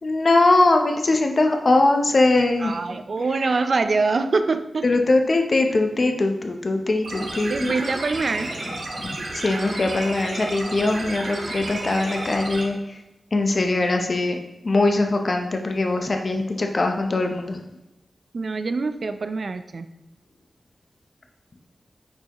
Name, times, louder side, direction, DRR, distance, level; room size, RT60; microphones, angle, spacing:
voice 1, 0.0-2.8 4.8-7.7 9.0-12.8 13.3-14.4 14.6-17.6, left 2 dB, 50° left, 4 dB, 0.7 m, -21 dB
voice 2, 2.6-4.9 7.5-8.5 18.3-19.9, right 3 dB, 60° right, 10 dB, 0.4 m, -24 dB
sound 1, 7.0-12.6, right 2 dB, 85° right, 1.4 m, -32 dB
9.3 x 4.7 x 3.0 m, 0.96 s
wide cardioid pair, 85°, 0 cm